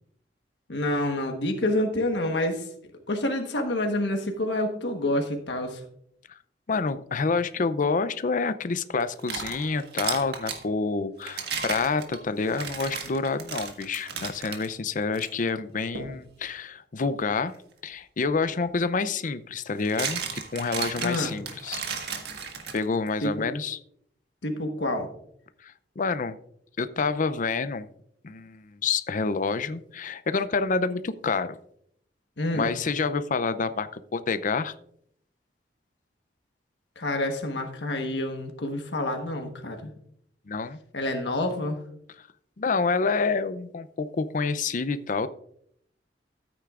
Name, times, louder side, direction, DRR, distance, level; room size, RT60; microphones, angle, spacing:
voice 1, 0.7-2.7 3.1-5.8 21.0-21.3 23.2-23.5 24.4-25.1 32.4-32.7 37.0-39.9 40.9-41.8, left 1 dB, 85° left, 4 dB, 1.3 m, -28 dB
voice 2, 6.7-17.6 17.8-21.8 22.7-23.8 25.6-26.4 26.8-27.9 28.2-31.6 32.5-34.8 40.5-40.8 42.2-42.3 42.6-45.3, left 4 dB, 50° left, 13 dB, 0.5 m, -28 dB
sound 1, 9.0-10.6 11.2-14.7 15.1-15.3 15.9-16.2 18.3-18.4 19.6-23.1, right 6 dB, 65° right, 1.6 m, -34 dB
13.5 x 9.0 x 2.5 m, 0.70 s
head